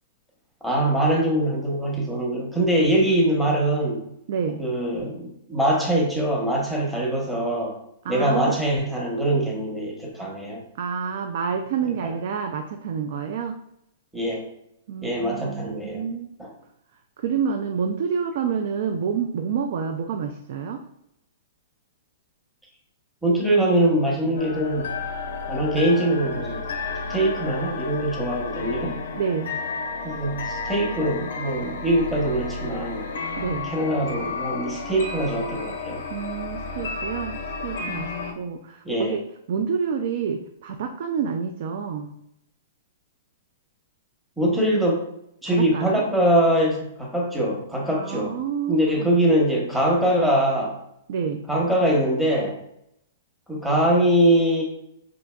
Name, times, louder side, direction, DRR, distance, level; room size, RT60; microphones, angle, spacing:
voice 1, 0.6-4.0 4.6-7.8 8.1-10.6 12.0-12.1 14.1-14.4 15.0-16.1 16.4-16.5 23.2-24.9 25.5-26.7 27.1-29.0 30.0-33.0 33.6-36.0 38.8-39.1 44.4-45.0 45.4-48.4 48.7-50.8 51.5-52.6 53.5-54.6, right 1 dB, ahead, -3 dB, 0.8 m, -23 dB
voice 2, 4.3-4.7 8.0-8.6 10.8-13.6 14.9-16.3 17.2-20.8 29.1-29.6 33.3-33.7 36.1-37.4 37.6-42.2 45.4-46.0 47.9-49.1 51.1-51.5, right 6 dB, 55° right, 5 dB, 0.3 m, -28 dB
sound 1, 24.4-38.3, left 4 dB, 80° left, 0.6 m, -32 dB
4.6 x 2.6 x 2.2 m, 0.77 s
hypercardioid pair, 150°, 0 cm